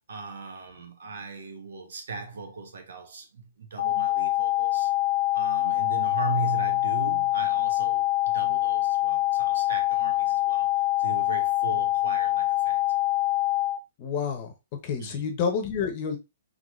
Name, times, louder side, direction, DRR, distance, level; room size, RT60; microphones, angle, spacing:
voice 1, 0.1-4.9 5.3-10.7 11.0-12.8 15.0-15.3, right 4 dB, 80° right, 1.4 m, -38 dB
sound 1, 3.8-13.8, left 16 dB, 60° left, 0.4 m, -25 dB
voice 2, 14.0-14.5 14.8-16.2, left 6 dB, 30° left, 0.9 m, -29 dB
4.0 x 3.4 x 3.2 m
hypercardioid pair, 170°, 0 cm